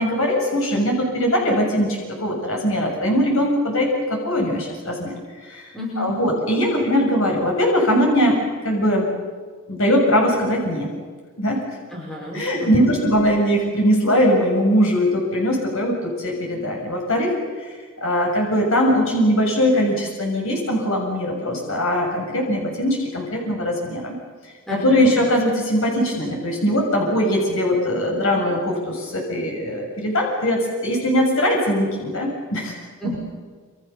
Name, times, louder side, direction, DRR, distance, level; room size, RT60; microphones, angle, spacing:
voice 1, 0.0-5.2 5.4-5.7 6.0-9.1 9.7-10.9 11.4-11.6 12.3-24.2 24.7-32.7 33.0-33.2, equal, 65° left, 0 dB, 7.0 m, -21 dB
voice 2, 5.7-6.1 11.9-13.0 24.7-25.1 33.0-33.2, left 1 dB, ahead, -4 dB, 5.8 m, -32 dB
28.0 x 27.0 x 7.1 m, 1.5 s
head